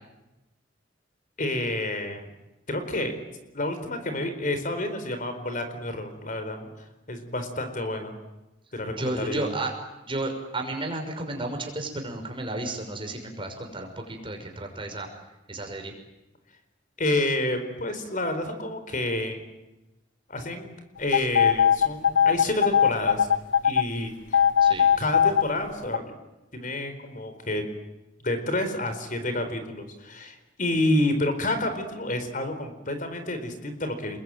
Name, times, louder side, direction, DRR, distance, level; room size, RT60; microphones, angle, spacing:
voice 1, 1.4-2.3 2.7-3.2 3.5-6.7 7.1-8.2 8.7-9.5 17.0-19.4 20.3-20.7 21.0-23.3 23.6-24.4 25.0-26.0 26.5-27.6 28.2-34.2, left 1 dB, 45° left, 8 dB, 4.3 m, -29 dB
voice 2, 9.0-9.7 10.0-15.1 15.5-15.9 24.6-24.9, right 2 dB, 30° right, 3 dB, 6.0 m, -32 dB
sound 1, 21.1-23.8 24.3-25.4 25.9-26.0, left 8 dB, 90° left, 0.9 m, -19 dB
29.5 x 22.0 x 9.1 m, 1.0 s
head